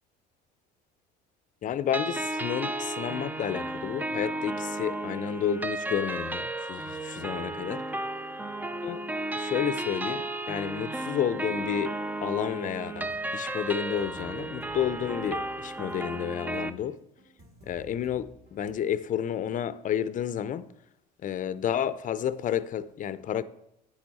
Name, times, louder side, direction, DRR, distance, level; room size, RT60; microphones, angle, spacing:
voice 1, 1.6-7.8 8.8-9.0 9.3-11.9 12.2-17.0 17.7-20.7 21.2-23.4, left 9 dB, 40° left, 0.5 m, -31 dB
sound 1, 1.9-16.7, right 2 dB, 10° right, 0.4 m, -34 dB
sound 2, 12.8-18.8, right 1 dB, 50° right, 2.9 m, -54 dB
9.5 x 7.6 x 4.2 m
supercardioid pair, 90°, 21 cm